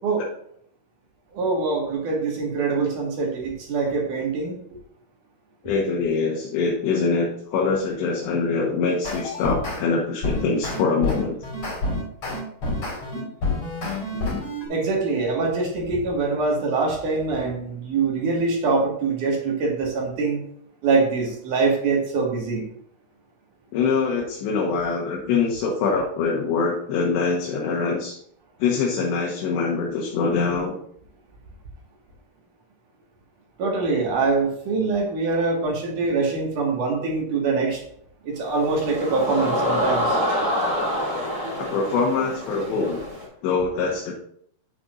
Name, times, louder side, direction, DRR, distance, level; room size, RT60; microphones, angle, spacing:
voice 1, 1.3-4.5 14.7-20.4 20.8-22.6 33.6-37.8 38.2-40.2, right 4 dB, 55° right, -1 dB, 2.6 m, -24 dB
voice 2, 5.6-11.4 13.1-13.3 14.1-14.5 23.7-28.2 28.6-30.8 41.5-43.0 43.4-44.1, left 4 dB, 70° left, -1 dB, 3.2 m, -24 dB
sound 1, 9.0-9.8 10.2-14.7, left 2 dB, 35° left, 4.4 m, -28 dB
sound 2, 38.4-43.2, left 1 dB, 30° right, 2.1 m, -26 dB
10.0 x 8.7 x 2.6 m, 0.66 s
omnidirectional pair, 5.6 m